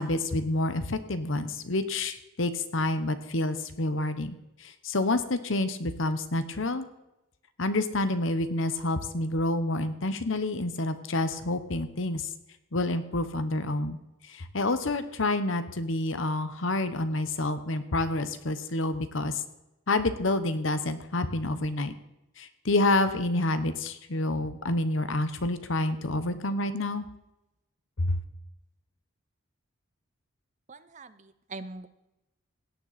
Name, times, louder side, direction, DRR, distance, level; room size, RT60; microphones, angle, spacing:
voice 1, 0.0-4.4 4.8-6.9 7.6-12.2 12.7-14.0 14.5-19.3 19.9-21.9 22.4-27.0 28.0-28.2, left 2 dB, 70° left, 11 dB, 1.0 m, -28 dB
voice 2, 30.7-31.9, right 3 dB, 35° right, 13 dB, 0.6 m, -43 dB
17.0 x 9.2 x 4.2 m, 0.92 s
head